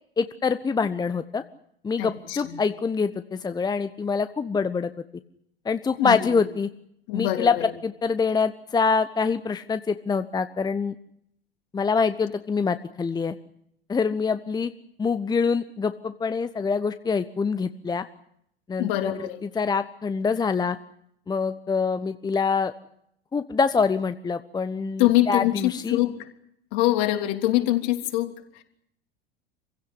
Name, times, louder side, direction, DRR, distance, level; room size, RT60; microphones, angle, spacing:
voice 1, 0.2-1.4 1.8-4.9 5.6-6.7 7.1-7.5 7.8-10.9 11.7-13.3 13.9-14.7 15.0-18.1 18.7-19.1 19.6-20.8 21.3-22.7 23.3-26.0, left 5 dB, 15° left, 12 dB, 1.0 m, -25 dB
voice 2, 2.0-2.6 6.0-6.4 7.1-7.6 18.8-19.4 25.0-26.3 26.7-28.6, left 15 dB, 50° left, 6 dB, 3.4 m, -24 dB
27.5 x 16.5 x 10.0 m, 0.72 s
figure-of-eight pair, 80°, 29 cm